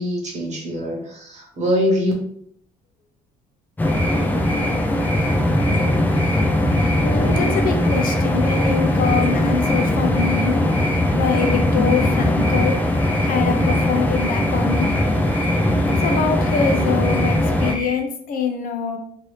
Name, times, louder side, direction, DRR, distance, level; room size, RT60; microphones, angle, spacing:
voice 1, 0.0-2.1, equal, 45° right, -1 dB, 1.2 m, -23 dB
sound 1, 3.8-18.0, equal, 25° left, 0.8 m, -32 dB
sound 2, 3.8-17.7, left 1 dB, 10° left, 0.4 m, -20 dB
voice 2, 7.0-10.7 11.1-12.9 13.2-14.9 16.0-19.0, left 6 dB, 55° left, 4 dB, 0.6 m, -24 dB
2.7 x 2.6 x 3.2 m, 0.64 s
cardioid pair, 110°, 17 cm